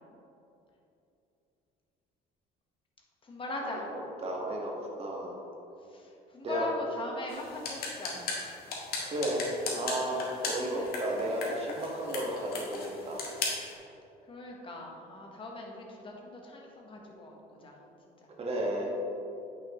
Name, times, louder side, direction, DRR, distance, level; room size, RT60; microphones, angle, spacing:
voice 1, 3.2-3.9 5.8-8.2 10.6-11.5 12.3-12.4 14.2-17.8 18.2-18.3, left 2 dB, 30° left, 0 dB, 1.3 m, -41 dB
voice 2, 4.2-4.7 5.0-5.4 6.4-6.7 9.0-9.4 9.8-13.2 18.4-18.9, right 1 dB, 35° right, -2 dB, 1.6 m, -33 dB
click buttons, 7.3-13.7, left 3 dB, 65° left, 1.7 m, -38 dB
8.7 x 6.0 x 3.1 m, 2.9 s
cardioid pair, 110°, 17 cm